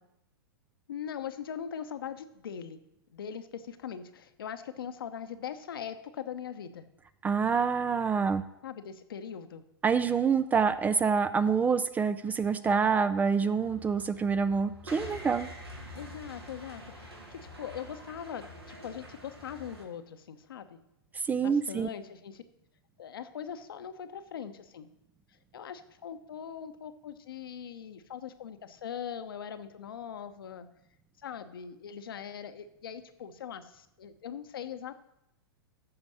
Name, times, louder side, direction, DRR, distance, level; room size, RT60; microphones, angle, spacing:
voice 1, 0.9-2.8 3.1-6.9 8.6-9.6 15.9-20.8 21.4-22.4 23.0-24.9 25.5-30.7 31.2-34.9, left 8 dB, 65° left, 10 dB, 0.9 m, -41 dB
voice 2, 7.2-8.4 9.8-15.5 21.3-21.9, right 5 dB, 10° right, 14 dB, 0.3 m, -26 dB
sound 1, 13.6-19.8, equal, 80° right, 2.4 m, -46 dB
13.5 x 5.2 x 6.3 m, 0.82 s
figure-of-eight pair, 105°, 13 cm